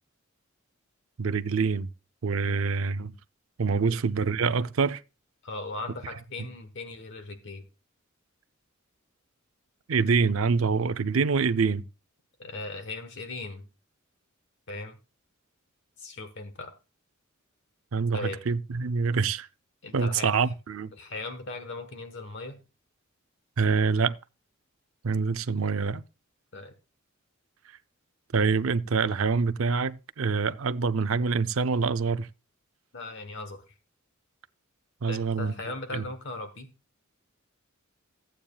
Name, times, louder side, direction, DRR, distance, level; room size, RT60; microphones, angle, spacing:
voice 1, 1.2-1.9 2.2-3.1 3.6-5.0 9.9-11.8 17.9-19.5 19.9-20.9 23.6-24.2 25.0-26.0 28.3-32.3 35.0-35.5 35.9-36.1, right 5 dB, 75° right, 0.5 m, -26 dB
voice 2, 5.4-7.6 12.4-13.7 14.7-15.0 16.0-16.7 18.1-18.4 19.8-20.3 20.9-22.6 26.5-26.7 32.9-33.7 35.1-36.7, left 2 dB, 60° left, 1.2 m, -38 dB
14.5 x 8.8 x 2.3 m
head